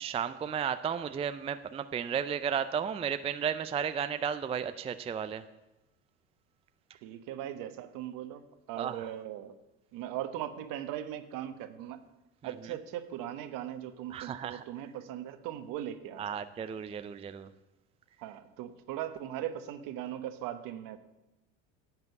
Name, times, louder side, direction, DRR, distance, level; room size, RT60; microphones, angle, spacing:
voice 1, 0.0-5.5 6.9-7.0 8.8-9.1 12.4-12.7 14.1-14.6 16.2-17.5, right 7 dB, 15° right, 11 dB, 0.4 m, -34 dB
voice 2, 7.0-8.4 8.7-9.6 9.9-12.0 12.4-16.4 18.2-21.0, right 11 dB, 60° right, 10 dB, 1.3 m, -39 dB
11.0 x 7.5 x 8.0 m, 0.99 s
supercardioid pair, 105°, 37 cm